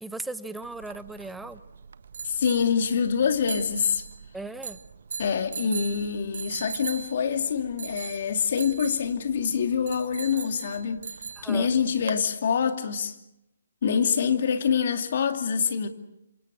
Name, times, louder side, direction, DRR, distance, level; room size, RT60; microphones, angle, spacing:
voice 1, 0.0-1.6 4.3-4.8 11.4-11.7, right 2 dB, 5° right, 0.9 m, -37 dB
sound 1, 0.6-12.2, right 6 dB, 65° right, 1.0 m, -40 dB
voice 2, 2.2-4.0 5.2-11.0 11.4-13.1 13.8-15.9, left 6 dB, 55° left, 2.6 m, -25 dB
27.0 x 25.5 x 6.3 m
hypercardioid pair, 145°, 0 cm